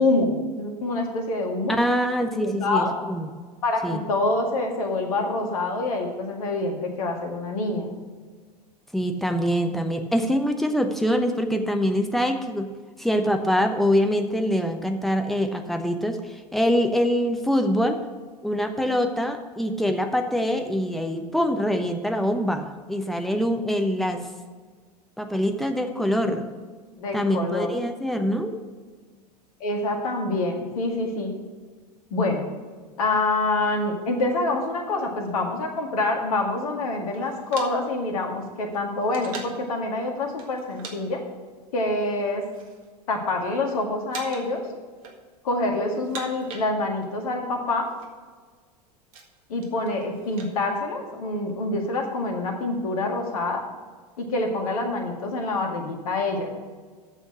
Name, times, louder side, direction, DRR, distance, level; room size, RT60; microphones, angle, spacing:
voice 1, 0.0-1.8 2.3-3.0 3.6-7.9 27.0-27.7 29.6-31.3 32.1-32.4 33.0-41.2 41.7-42.4 43.1-44.6 45.4-47.9 49.5-53.6 54.2-56.5, left 2 dB, 60° left, 2 dB, 1.9 m, -26 dB
voice 2, 1.7-3.3 3.8-4.0 8.9-12.7 13.0-18.0 18.4-24.3 25.2-26.5 27.1-28.6, equal, ahead, 5 dB, 0.9 m, -24 dB
sound 1, 37.1-39.7 40.4-41.0 41.2-41.5 42.1-42.9 43.2-43.7 44.1-44.6 44.9-45.5 45.9-47.2 47.4-47.5 47.7-48.1 48.6-50.5, right 4 dB, 55° right, 1.7 m, -42 dB
8.9 x 6.9 x 6.2 m, 1.5 s
figure-of-eight pair, 80°, 21 cm